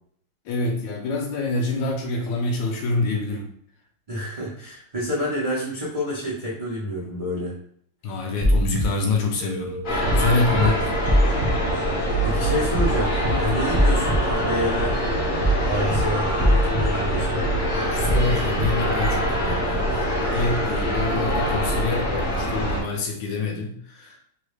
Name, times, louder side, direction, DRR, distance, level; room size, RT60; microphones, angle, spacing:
voice 1, 0.4-3.5 8.0-10.7 13.5-13.6 17.7-24.2, left 3 dB, 75° left, 2 dB, 1.2 m, -26 dB
voice 2, 4.1-7.6 10.5-10.7 12.2-15.0 15.3-17.4, equal, 70° right, -6 dB, 0.3 m, -28 dB
sound 1, 8.4-8.8 10.1-10.3 10.6-10.7 11.1-11.5 12.7-12.9 13.2-13.3 13.7-14.2 15.4-15.6 15.9-16.0 16.4-16.8 18.1-18.3 18.6-18.7, equal, 40° right, 0.7 m, -21 dB
sound 2, 9.4-22.0, equal, 85° right, 1.4 m, -34 dB
sound 3, 9.8-22.8, equal, 55° left, 0.5 m, -24 dB
3.9 x 2.1 x 3.2 m, 0.65 s
omnidirectional pair, 2.2 m